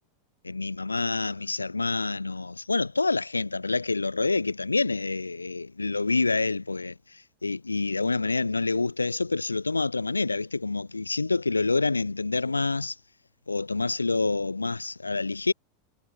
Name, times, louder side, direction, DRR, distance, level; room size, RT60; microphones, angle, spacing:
voice 1, 0.4-13.0 13.5-15.5, left 3 dB, 80° left, 0.3 m, -27 dB
figure-of-eight pair, 90°, 0 cm